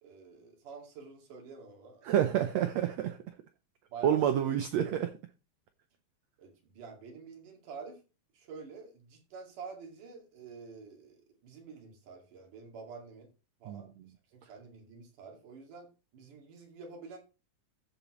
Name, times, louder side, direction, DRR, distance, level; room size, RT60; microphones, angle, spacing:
voice 1, 0.0-2.1 3.9-4.5 6.4-8.0 8.3-13.3 13.6-13.9 14.3-17.2, right 5 dB, 70° right, 3.9 m, -48 dB
voice 2, 2.0-3.2 4.0-5.1 13.7-13.8, right 10 dB, 90° right, 1.5 m, -28 dB
14.5 x 6.9 x 3.1 m
omnidirectional pair, 3.9 m